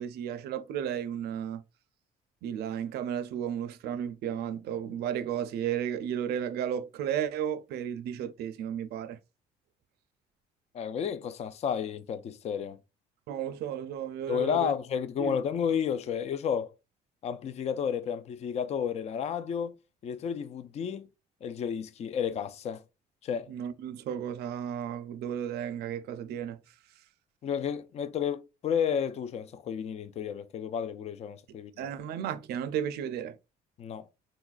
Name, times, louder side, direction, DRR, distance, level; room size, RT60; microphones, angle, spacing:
voice 1, 0.0-1.6 2.4-9.2 13.3-14.7 15.2-15.4 23.5-26.6 31.8-33.4, right 9 dB, 70° right, 0.4 m, -33 dB
voice 2, 10.7-12.8 14.3-16.7 17.2-19.7 20.0-21.1 21.4-22.8 23.2-23.5 27.4-31.9 33.8-34.0, left 8 dB, 40° left, 0.4 m, -32 dB
3.9 x 2.3 x 2.4 m
cardioid pair, 110°, 17 cm